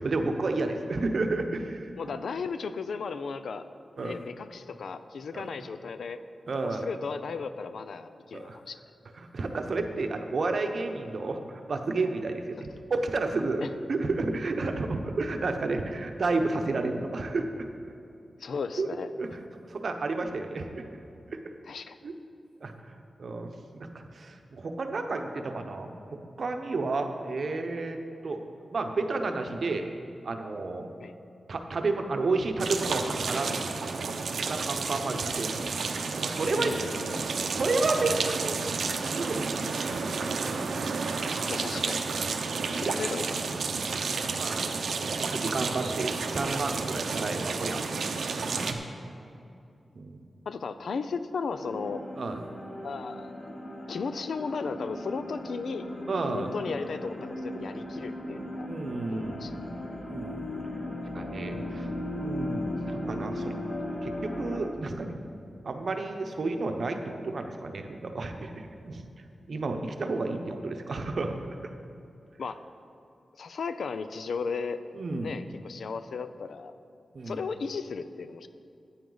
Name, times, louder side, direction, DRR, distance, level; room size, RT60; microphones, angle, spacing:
voice 1, 0.0-1.9 4.0-4.2 5.3-5.7 6.5-6.9 8.3-8.6 9.1-17.7 18.8-18.9 19.2-19.4 19.7-20.8 21.3-21.4 22.0-22.1 22.6-28.4 28.7-29.9 30.2-30.9 31.5-33.5 34.4-35.6 36.2-36.7 37.5-38.6 39.1-40.0 42.4-42.8 43.7-43.9 44.4-44.7 45.0-47.8 48.5-48.8 49.9-50.3 52.2-52.4 56.1-56.5 58.7-59.5 60.1-60.5 61.1-61.9 62.2-63.5 64.0-65.2 65.6-69.0 69.5-71.3 71.6-71.7 74.9-75.4 77.1-77.4, right 3 dB, 55° right, 5 dB, 0.8 m, -31 dB
voice 2, 2.0-3.7 4.0-6.2 6.6-8.8 18.4-19.1 21.6-22.0 31.0-31.1 36.5-37.5 41.5-42.1 42.6-43.4 50.5-52.1 52.8-53.3 53.9-55.9 56.3-58.7 59.1-59.5 72.4-72.6 73.4-74.8 75.2-76.7 77.3-78.5, left 5 dB, 80° left, 11 dB, 0.5 m, -35 dB
sound 1, 32.6-48.7, right 4 dB, 85° right, 0.7 m, -31 dB
sound 2, 51.5-64.6, left 1 dB, 55° left, 2.9 m, -37 dB
14.0 x 8.8 x 3.9 m, 2.6 s
wide cardioid pair, 150°, 0 cm